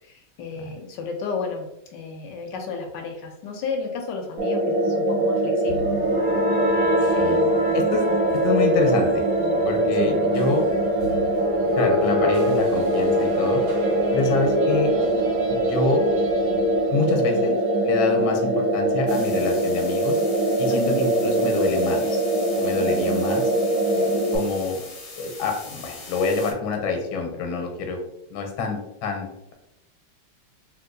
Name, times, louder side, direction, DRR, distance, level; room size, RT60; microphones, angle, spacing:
voice 1, 0.0-5.9 7.1-7.8 9.9-10.2 20.7-21.0 23.9-24.1, left 4 dB, 75° left, 3 dB, 1.1 m, -33 dB
sound 1, 4.4-24.4, right 1 dB, 60° right, 1.1 m, -22 dB
sound 2, 5.7-17.6, left 1 dB, 90° right, 1.9 m, -29 dB
voice 2, 7.7-8.1 8.4-9.2 9.7-10.6 11.8-13.6 14.1-14.9 15.5-16.0 16.9-17.6 17.8-20.2 20.6-22.2 22.6-23.5 24.3-24.8 25.2-28.0 28.3-29.5, left 4 dB, 90° left, 3 dB, 1.5 m, -26 dB
sound 3, 19.1-26.5, left 3 dB, 55° left, 0.8 m, -41 dB
3.5 x 2.8 x 2.5 m, 0.87 s
omnidirectional pair, 2.2 m